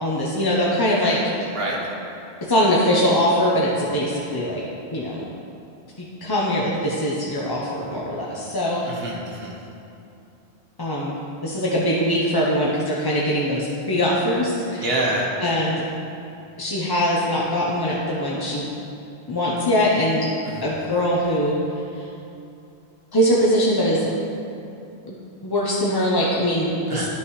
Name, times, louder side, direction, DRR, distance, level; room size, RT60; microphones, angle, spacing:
voice 1, 0.0-1.2 2.4-4.6 4.9-5.3 6.0-8.8 10.8-11.2 11.4-14.8 15.4-15.8 16.6-18.7 19.3-20.3 20.6-21.5 23.1-24.1 25.1-25.2 25.4-27.1, equal, 25° left, -5 dB, 0.6 m, -22 dB
voice 2, 8.9-9.5 14.8-15.3 20.4-20.7 26.9-27.1, right 1 dB, 60° right, -3 dB, 1.5 m, -26 dB
11.5 x 6.0 x 3.1 m, 2.7 s
omnidirectional pair, 1.1 m